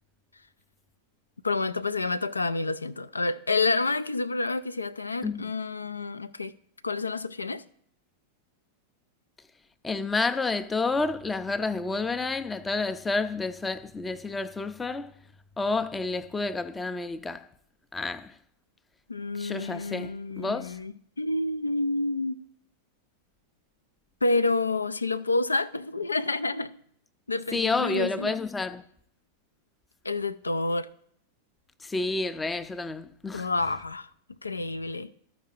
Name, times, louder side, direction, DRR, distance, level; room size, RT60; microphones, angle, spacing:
voice 1, 1.4-6.5 6.8-7.6 19.1-20.9 21.2-22.4 24.2-26.8 27.3-28.4 30.0-30.9 33.3-34.1 34.4-35.1, left 3 dB, 80° left, 0.3 m, -28 dB
voice 2, 9.8-15.1 15.6-17.5 17.9-18.3 19.3-20.8 27.5-28.8 31.8-33.5, left 3 dB, 10° left, 0.5 m, -30 dB
13.0 x 5.2 x 4.4 m
figure-of-eight pair, 90°, 0 cm